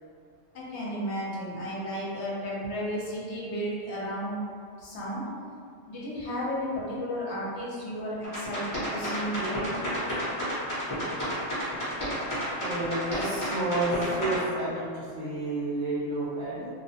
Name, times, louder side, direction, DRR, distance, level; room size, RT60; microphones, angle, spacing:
voice 1, 0.5-4.4 4.8-5.2 5.9-9.7, equal, 65° left, -6 dB, 0.9 m, -33 dB
sound 1, 8.2-14.4, equal, 20° left, 0.7 m, -31 dB
voice 2, 12.6-16.7, right 2 dB, 90° right, -9 dB, 1.1 m, -30 dB
2.6 x 2.1 x 2.7 m, 2.2 s
omnidirectional pair, 1.3 m